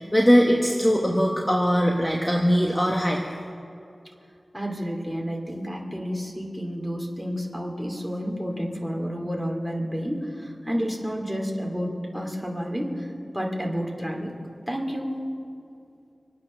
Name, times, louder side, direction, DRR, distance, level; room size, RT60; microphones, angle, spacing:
voice 1, 0.0-3.2, equal, 10° left, 0 dB, 1.3 m, -21 dB
voice 2, 4.5-14.3 14.7-15.1, equal, 5° right, 0 dB, 2.6 m, -30 dB
25.5 x 8.8 x 6.3 m, 2.5 s
wide cardioid pair, 75°, 0 cm